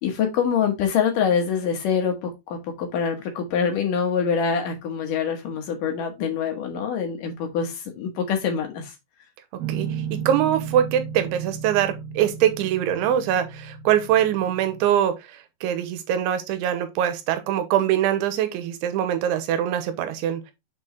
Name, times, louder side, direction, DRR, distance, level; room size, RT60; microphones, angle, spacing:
voice 1, 0.0-8.9, left 7 dB, 70° left, 2.1 m, -25 dB
Guitar, 9.6-14.9, right 7 dB, 70° right, 2.4 m, -34 dB
voice 2, 9.7-20.4, right 10 dB, 90° right, 3.3 m, -23 dB
6.9 x 4.6 x 3.7 m
omnidirectional pair, 5.3 m